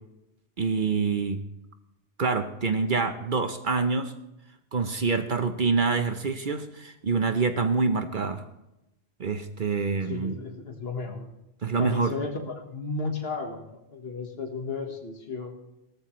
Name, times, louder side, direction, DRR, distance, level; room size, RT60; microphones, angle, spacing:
voice 1, 0.6-1.4 2.2-4.1 4.7-8.4 9.2-10.4 11.6-12.1, right 4 dB, 50° right, 8 dB, 0.9 m, -26 dB
voice 2, 10.0-11.3 11.8-15.5, left 4 dB, 55° left, 5 dB, 1.7 m, -34 dB
18.0 x 13.5 x 3.1 m, 0.90 s
omnidirectional pair, 1.2 m